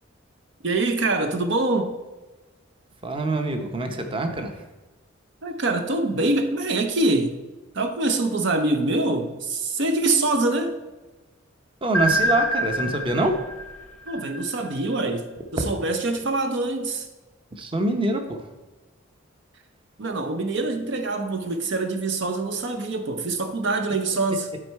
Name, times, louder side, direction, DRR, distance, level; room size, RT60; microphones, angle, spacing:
voice 1, 0.6-1.9 5.4-7.4 7.7-10.8 14.1-17.1 20.0-24.5, right 2 dB, 60° right, 0.6 m, -24 dB
voice 2, 3.0-4.6 11.8-13.4 17.6-18.5, right 2 dB, 25° right, 0.8 m, -25 dB
sound 1, 11.9-14.9, equal, 5° left, 0.7 m, -26 dB
11.0 x 4.5 x 4.6 m
head